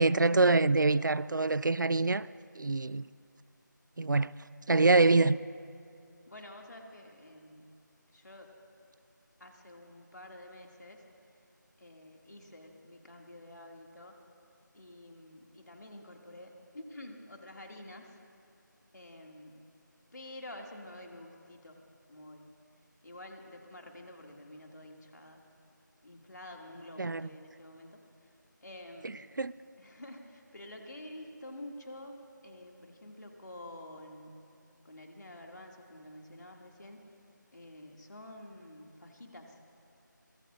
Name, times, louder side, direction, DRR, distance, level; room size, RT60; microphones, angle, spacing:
voice 1, 0.0-2.3 2.6-3.0 4.0-4.3 4.7-5.4 27.0-27.2 29.4-29.5, right 3 dB, 70° right, 0.4 m, -25 dB
voice 2, 6.2-7.7 8.1-8.5 9.4-11.0 11.8-14.2 14.7-18.2 18.9-19.7 20.1-21.8 22.1-22.5 23.0-25.5 26.0-28.0 28.6-29.3 29.8-34.5 34.8-37.1 37.5-39.6, left 1 dB, 60° left, 2.3 m, -49 dB
25.0 x 20.0 x 2.5 m
figure-of-eight pair, 170°, 11 cm